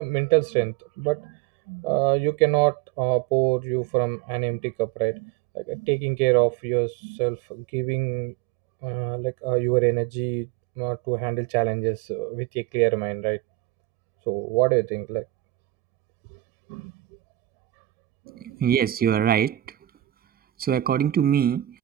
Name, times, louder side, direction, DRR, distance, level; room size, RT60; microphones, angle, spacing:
voice 1, 0.0-1.4 1.7-8.3 8.8-10.5 10.8-13.4 14.3-15.2 16.7-16.9 18.3-18.6, right 36 dB, 35° right, 4.9 m, -25 dB
voice 2, 18.6-19.6 20.6-21.6, right 9 dB, 20° right, 8.0 m, -21 dB
figure-of-eight pair, 115°, 49 cm